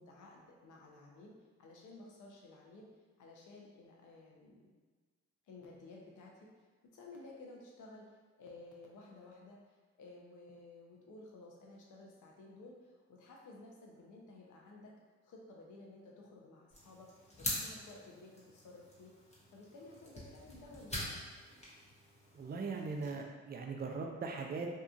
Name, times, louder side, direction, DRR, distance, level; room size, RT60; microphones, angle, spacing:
voice 1, 0.0-1.3 1.6-2.9 3.2-4.7 5.5-6.7 6.9-14.9 15.2-19.1 19.5-21.2, left 2 dB, 75° left, -2 dB, 0.7 m, -54 dB
sound 1, 16.7-23.1, left 1 dB, 20° left, 0.9 m, -45 dB
voice 2, 22.3-24.7, right 4 dB, 30° right, 2 dB, 0.4 m, -40 dB
2.8 x 2.4 x 2.3 m, 1.4 s
supercardioid pair, 60°, 31 cm